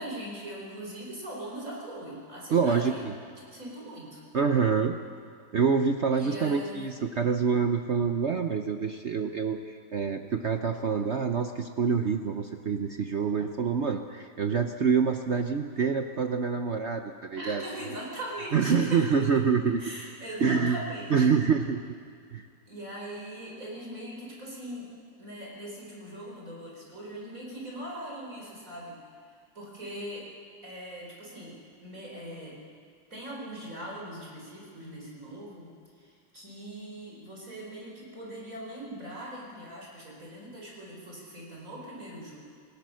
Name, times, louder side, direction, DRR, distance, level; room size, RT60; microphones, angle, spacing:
voice 1, 0.0-3.1 3.5-4.2 6.2-6.9 17.4-19.1 19.8-21.4 22.7-24.9 25.2-29.0 29.2-30.3 30.6-32.6 33.1-42.4, right 1 dB, 40° right, -3 dB, 5.1 m, -41 dB
voice 2, 2.5-3.1 4.3-4.9 5.5-17.6 18.5-19.8 20.4-20.8 21.1-21.8 22.3-22.4, right 6 dB, 75° right, 6 dB, 0.6 m, -26 dB
28.5 x 17.0 x 6.4 m, 2.3 s
omnidirectional pair, 2.3 m